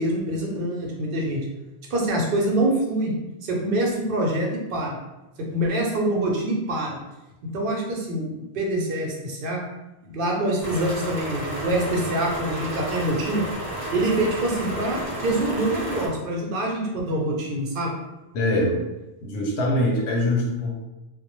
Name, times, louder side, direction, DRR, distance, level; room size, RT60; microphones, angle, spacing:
voice 1, 0.0-1.4 1.9-3.1 3.4-5.0 5.4-7.0 7.4-9.6 10.0-13.4 13.9-17.9, right 1 dB, 60° right, -1 dB, 0.7 m, -25 dB
sound 1, 10.6-16.1, right 1 dB, 20° left, 0.7 m, -32 dB
voice 2, 18.3-18.8 19.2-20.8, left 1 dB, 80° left, 0 dB, 0.9 m, -23 dB
2.2 x 2.0 x 2.9 m, 1.0 s
omnidirectional pair, 1.1 m